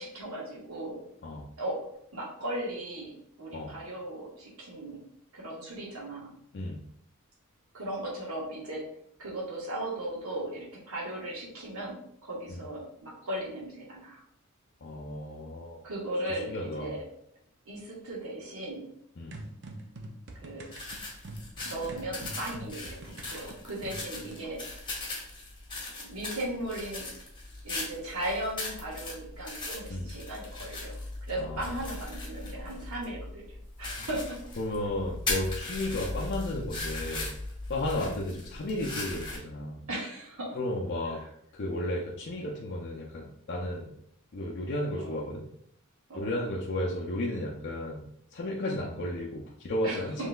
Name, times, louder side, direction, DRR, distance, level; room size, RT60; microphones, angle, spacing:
voice 1, 0.0-1.0 1.6-1.8 2.1-5.0 5.3-6.3 7.7-8.9 9.2-14.2 15.8-17.0 17.6-18.9 20.3-20.7 21.6-24.7 26.0-27.1 27.6-31.0 31.3-34.4 37.8-38.1 39.9-40.6 41.2-41.3 44.9-45.2 46.1-46.5 49.8-50.3, right 1 dB, 85° right, -4 dB, 1.5 m, -37 dB
voice 2, 6.5-6.8 12.5-12.6 14.8-15.8 16.3-16.9 19.2-19.4 29.9-30.1 31.4-31.7 34.0-34.1 34.6-37.3 37.7-39.9 40.5-41.2 41.5-43.9 44.3-45.5 46.1-50.3, left 1 dB, 50° left, -3 dB, 0.6 m, -33 dB
sound 1, 19.3-24.5, right 1 dB, 55° right, 0.6 m, -45 dB
sound 2, 20.7-39.4, left 2 dB, 20° left, 1.1 m, -39 dB
5.5 x 3.2 x 2.4 m, 0.70 s
head